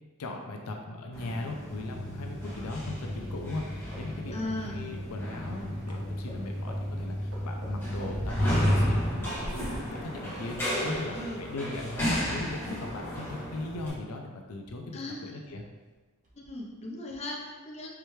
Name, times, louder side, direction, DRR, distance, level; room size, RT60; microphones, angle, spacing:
voice 1, 0.2-15.6, left 2 dB, 75° left, 2 dB, 0.5 m, -39 dB
sound 1, 1.1-13.9, equal, 10° left, 1.5 m, -32 dB
sound 2, 3.9-10.3 10.6-11.7 12.0-12.1, right 1 dB, 85° right, 1.3 m, -49 dB
voice 2, 4.3-4.8 11.1-11.4 12.0-12.3 14.9-15.4 16.3-17.9, left 2 dB, 30° left, -1 dB, 0.6 m, -37 dB
sound 3, 5.0-5.2 5.5-5.8 6.4-6.5 7.1-7.2 7.5-9.8 10.2-10.7 11.1-11.3 11.7-12.0 12.3-12.8 13.1-13.4 13.9-14.0 14.3-14.4 14.6-15.0 15.4-15.7 15.9-16.0 16.2-16.7 17.1-17.2, equal, 35° right, 0.9 m, -46 dB
4.7 x 3.3 x 3.1 m, 1.3 s
head